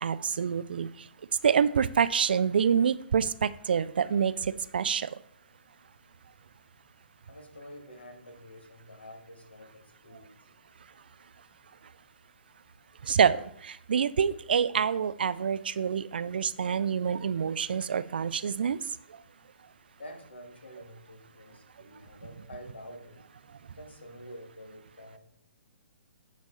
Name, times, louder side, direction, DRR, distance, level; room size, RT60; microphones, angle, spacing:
voice 1, 0.0-0.9 1.4-4.3 4.7-5.1 13.1-13.4 13.9-18.8, right 7 dB, 60° right, 15 dB, 0.3 m, -26 dB
voice 2, 7.3-10.4 20.0-23.2 23.6-25.2, equal, 70° left, 5 dB, 1.5 m, -48 dB
10.0 x 4.1 x 3.2 m, 0.69 s
figure-of-eight pair, 125°, 6 cm